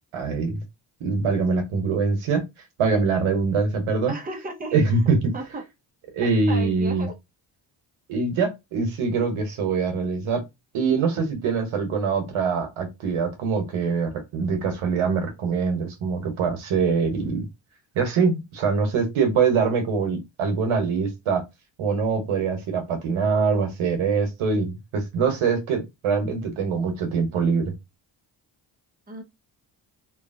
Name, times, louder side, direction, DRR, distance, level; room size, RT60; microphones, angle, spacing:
voice 1, 0.1-0.6 1.0-2.4 2.8-4.1 4.7-5.3 6.1-7.1 8.1-10.4 10.7-17.5 17.9-21.4 21.8-27.7, right 5 dB, 85° right, 1.0 m, -23 dB
voice 2, 4.1-5.0 5.3-5.6 6.2-7.1 29.1-29.2, right 1 dB, 20° right, 0.9 m, -35 dB
2.9 x 2.3 x 2.5 m
cardioid pair, 70°, 47 cm